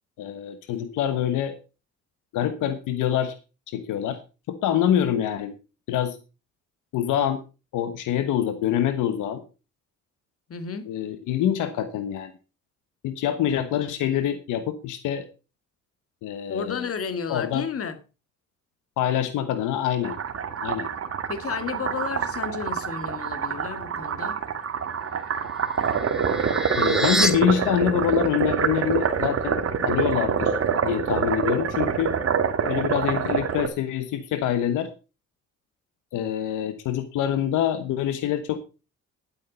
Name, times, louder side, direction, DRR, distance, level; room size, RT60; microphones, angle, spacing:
voice 1, 0.2-1.5 2.3-3.3 3.7-4.2 4.5-5.5 5.9-6.2 6.9-7.4 7.7-9.4 10.8-12.3 13.0-15.3 16.2-16.9 17.3-17.6 19.0-20.2 20.6-20.9 26.8-30.5 30.8-32.2 32.7-34.9 36.1-38.6, left 10 dB, 90° left, 1.2 m, -25 dB
voice 2, 10.5-10.9 16.5-18.0 21.3-24.4, left 6 dB, 50° left, 1.9 m, -32 dB
sound 1, 20.0-33.7, right 6 dB, 50° right, 2.0 m, -26 dB
sound 2, 25.1-27.3, right 1 dB, ahead, 1.5 m, -28 dB
11.0 x 8.6 x 5.2 m
cardioid pair, 90°, 30 cm